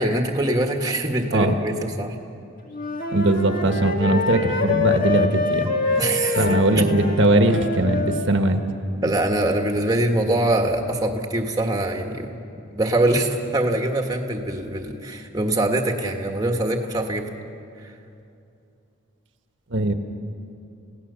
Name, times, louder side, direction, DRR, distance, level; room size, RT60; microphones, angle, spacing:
voice 1, 0.0-2.1 6.0-6.9 9.0-12.4 12.7-17.3 17.8-17.9, right 1 dB, 20° right, 3 dB, 1.5 m, -23 dB
Wind instrument woodwind instrument, 2.7-8.2, left 3 dB, 45° left, 1.9 m, -25 dB
voice 2, 3.1-5.7 6.3-8.6 19.7-19.9, right 1 dB, 65° right, 6 dB, 1.4 m, -20 dB
30.0 x 16.5 x 6.9 m, 2.6 s
head